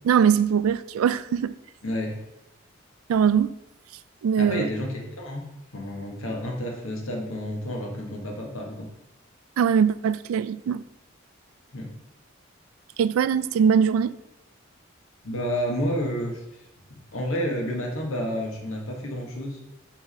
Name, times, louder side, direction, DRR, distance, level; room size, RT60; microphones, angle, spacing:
voice 1, 0.0-1.5 3.1-3.6 4.2-4.7 9.6-10.8 13.0-14.1, right 7 dB, 90° right, 0.3 m, -21 dB
voice 2, 1.8-2.2 4.4-5.4 5.7-8.9 11.7-11.9 15.2-16.4 17.1-19.6, equal, 80° left, 1.4 m, -30 dB
5.0 x 3.6 x 5.4 m
head